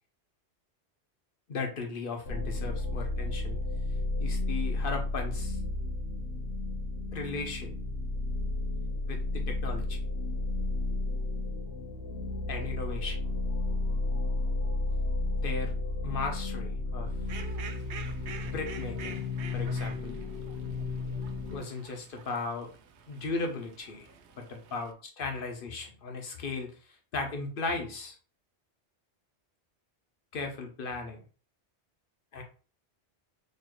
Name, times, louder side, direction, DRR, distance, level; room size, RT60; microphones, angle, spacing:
voice 1, 1.5-3.6 4.2-5.6 7.1-7.8 9.1-10.0 12.5-13.2 15.4-15.7 16.0-17.1 18.5-19.2 19.5-20.2 21.5-22.7 23.1-24.1 24.4-26.7 27.1-28.2 30.3-31.2 32.3-32.4, left 3 dB, 55° left, 3 dB, 1.0 m, -36 dB
sound 1, 2.3-21.6, left 2 dB, 80° left, 1.0 m, -32 dB
Fowl, 17.1-24.9, right 7 dB, 80° right, 0.8 m, -48 dB
4.4 x 2.6 x 3.1 m, 0.36 s
omnidirectional pair, 1.1 m